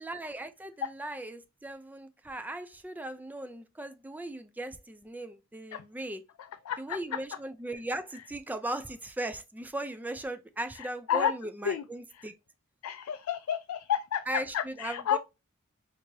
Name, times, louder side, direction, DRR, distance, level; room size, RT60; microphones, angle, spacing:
voice 1, 0.0-6.2 6.8-12.3 14.3-15.2, right 1 dB, 10° right, 0.3 m, -38 dB
voice 2, 6.4-7.0 10.8-11.3 11.6-11.8 12.1-12.3 12.8-14.2 14.5-15.2, left 9 dB, 80° left, 0.3 m, -31 dB
4.4 x 2.6 x 2.7 m
head